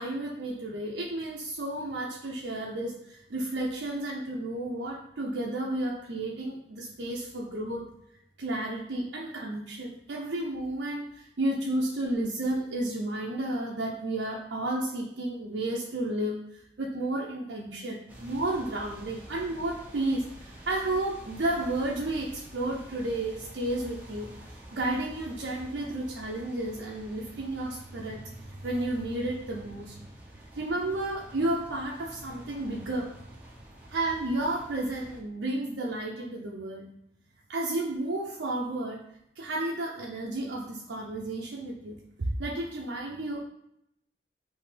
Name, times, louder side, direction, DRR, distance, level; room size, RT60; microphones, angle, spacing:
voice 1, 0.0-7.9 8.4-24.3 24.7-30.0 30.6-33.1 33.9-36.9 37.5-39.0 39.4-43.4, right 1 dB, 90° right, -2 dB, 0.6 m, -32 dB
sound 1, 18.1-35.2, right 1 dB, 10° right, 0.7 m, -48 dB
5.8 x 2.8 x 3.3 m, 0.76 s
head